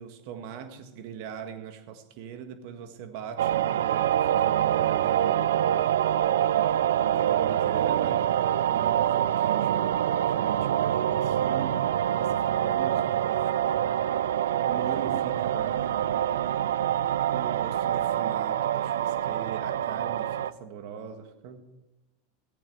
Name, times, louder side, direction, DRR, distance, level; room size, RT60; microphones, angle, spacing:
voice 1, 0.0-5.6 7.0-8.2 8.6-11.8 12.1-13.8 14.6-16.3 17.3-21.6, right 7 dB, 65° right, 8 dB, 1.6 m, -40 dB
sound 1, 3.4-20.5, right 11 dB, 85° right, 0.4 m, -25 dB
14.5 x 8.7 x 6.0 m, 1.0 s
hypercardioid pair, 105°, 0 cm